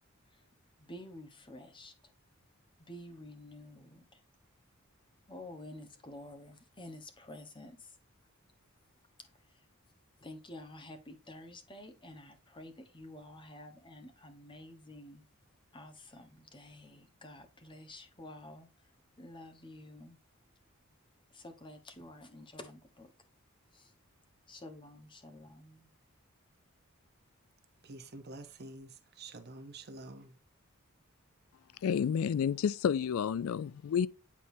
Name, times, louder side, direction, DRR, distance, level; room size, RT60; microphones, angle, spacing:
voice 1, 0.8-1.9 2.9-4.2 5.3-8.0 9.2-9.7 10.2-15.2 15.7-18.9 19.2-20.2 21.3-23.1 23.7-23.9 24.5-25.9, left 1 dB, 25° left, 1.1 m, -50 dB
voice 2, 27.8-30.3, right 2 dB, 50° right, 0.9 m, -48 dB
voice 3, 31.8-34.1, left 7 dB, 75° left, 0.3 m, -30 dB
8.4 x 4.3 x 2.7 m
head